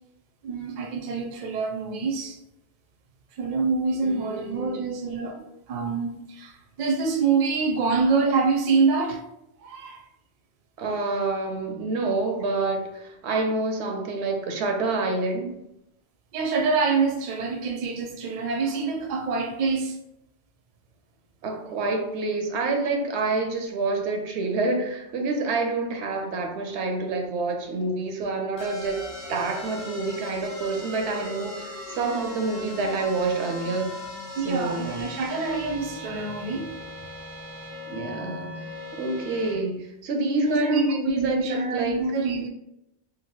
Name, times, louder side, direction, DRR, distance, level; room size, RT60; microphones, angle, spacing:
voice 1, 0.4-2.4 3.3-9.2 9.6-10.0 16.3-20.0 34.3-36.7 40.4-42.5, right 4 dB, 55° right, 0.5 m, -26 dB
voice 2, 4.0-4.8 10.8-15.5 21.4-34.0 34.4-34.9 37.9-38.6 39.0-42.0, right 3 dB, 85° right, 0.9 m, -27 dB
sound 1, 28.6-39.5, left 2 dB, 30° left, 0.6 m, -39 dB
2.9 x 2.4 x 2.9 m
omnidirectional pair, 1.1 m